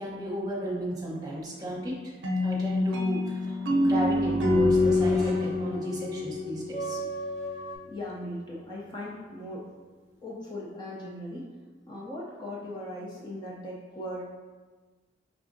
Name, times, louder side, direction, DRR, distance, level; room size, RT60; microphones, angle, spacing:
voice 1, 0.0-1.9 2.4-7.0, right 1 dB, 20° right, -5 dB, 0.9 m, -34 dB
sound 1, 2.2-7.1, left 2 dB, 85° right, 0.5 m, -26 dB
sound 2, 3.4-6.4, right 1 dB, 5° left, 1.3 m, -39 dB
sound 3, 3.9-7.8, right 1 dB, 40° left, 1.2 m, -39 dB
voice 2, 7.8-9.7 10.2-11.5 11.9-14.2, left 1 dB, 25° left, -5 dB, 0.5 m, -38 dB
4.8 x 3.4 x 2.6 m, 1.4 s
head